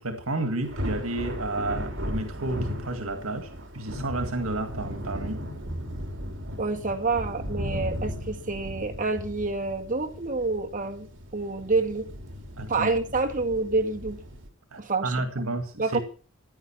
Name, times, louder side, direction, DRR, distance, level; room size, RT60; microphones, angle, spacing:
voice 1, 0.0-5.4 12.6-12.9 14.7-16.0, right 2 dB, 80° right, 2.0 m, -31 dB
Thunder, 0.6-14.5, equal, 60° right, 3.0 m, -36 dB
voice 2, 6.6-11.1 11.3-12.1 12.7-14.2 14.8-15.2 15.8-16.0, right 3 dB, 40° right, 1.9 m, -27 dB
15.5 x 10.0 x 7.3 m
head